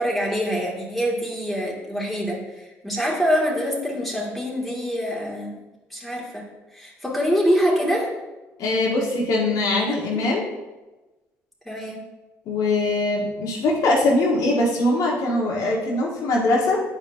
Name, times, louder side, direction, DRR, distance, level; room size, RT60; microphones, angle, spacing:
voice 1, 0.0-5.6 5.9-8.1 9.9-10.2 11.7-12.0, equal, ahead, -4 dB, 2.1 m, -25 dB
voice 2, 8.6-10.4 12.5-16.8, left 2 dB, 65° left, -2 dB, 1.4 m, -22 dB
8.4 x 5.0 x 2.6 m, 1.1 s
hypercardioid pair, 60°, 6 cm